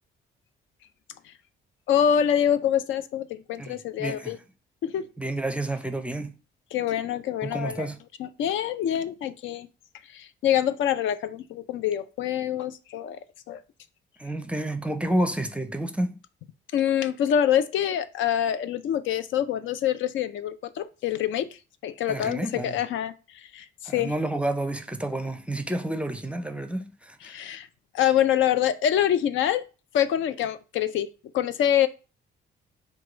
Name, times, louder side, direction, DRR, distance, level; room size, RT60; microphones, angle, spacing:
voice 1, 1.9-4.4 4.8-5.1 6.7-7.9 8.2-9.7 10.1-13.2 13.5-13.6 16.7-21.5 21.8-23.1 23.5-24.1 27.3-27.7 27.9-29.6 29.9-31.1 31.3-31.9, left 10 dB, 75° left, 0.4 m, -25 dB
voice 2, 3.6-4.4 5.2-6.3 7.4-8.0 14.2-16.2 22.1-22.8 23.9-27.4, right 1 dB, 5° right, 0.5 m, -30 dB
4.6 x 2.3 x 4.8 m
cardioid pair, 90°, 20 cm